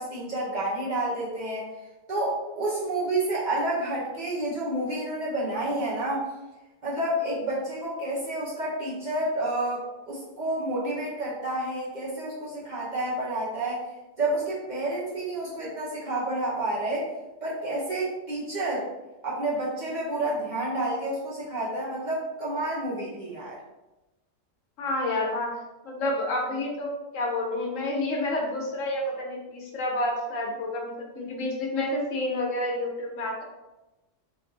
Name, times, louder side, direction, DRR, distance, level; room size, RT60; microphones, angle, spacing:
voice 1, 0.0-1.7 2.1-6.3 6.8-13.8 14.2-17.1 17.4-18.8 19.2-23.5, right 1 dB, 40° right, -7 dB, 1.0 m, -29 dB
voice 2, 24.8-25.6 25.8-33.4, left 1 dB, 80° left, 0 dB, 1.2 m, -29 dB
3.1 x 2.6 x 3.8 m, 1.0 s
omnidirectional pair, 1.3 m